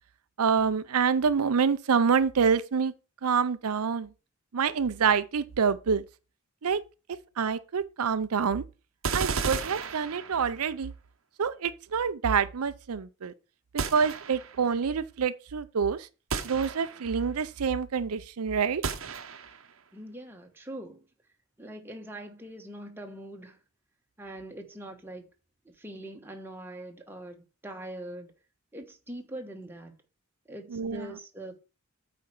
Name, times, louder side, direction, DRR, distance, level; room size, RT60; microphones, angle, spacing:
voice 1, 0.4-2.9 3.2-4.1 4.5-6.0 6.6-6.8 7.4-8.6 9.1-10.9 11.4-13.3 13.7-16.1 16.4-18.8 30.7-31.1, right 6 dB, 85° right, 0.6 m, -27 dB
sound 1, 9.0-10.7 13.8-14.7 16.3-17.2 18.8-19.7, right 5 dB, 65° right, 0.9 m, -33 dB
voice 2, 19.9-21.0 21.6-23.6 24.2-25.3 25.6-28.3 28.7-30.0 30.5-31.6, right 1 dB, 10° right, 1.3 m, -42 dB
8.6 x 4.3 x 6.0 m
head